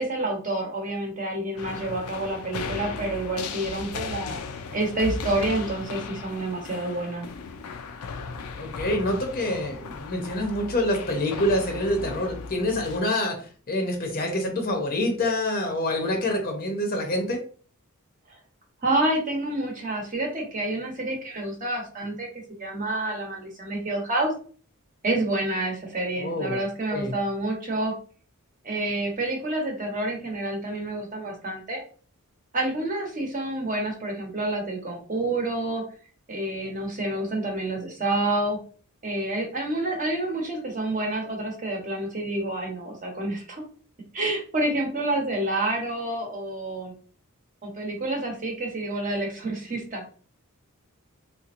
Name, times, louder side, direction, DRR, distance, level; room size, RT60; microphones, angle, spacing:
voice 1, 0.0-4.4 4.7-7.3 18.3-18.4 18.8-22.3 22.6-24.3 25.0-27.9 28.6-31.8 32.5-35.8 36.3-38.6 39.0-43.6 44.1-46.9 47.6-50.1, right 2 dB, 35° right, 1 dB, 1.0 m, -28 dB
sound 1, 1.6-13.0, left 4 dB, 80° left, 0.4 m, -36 dB
voice 2, 8.6-13.4 13.7-17.4 26.2-26.6 26.9-27.1, left 1 dB, 40° left, 2 dB, 0.6 m, -26 dB
3.5 x 2.8 x 2.5 m, 0.42 s
head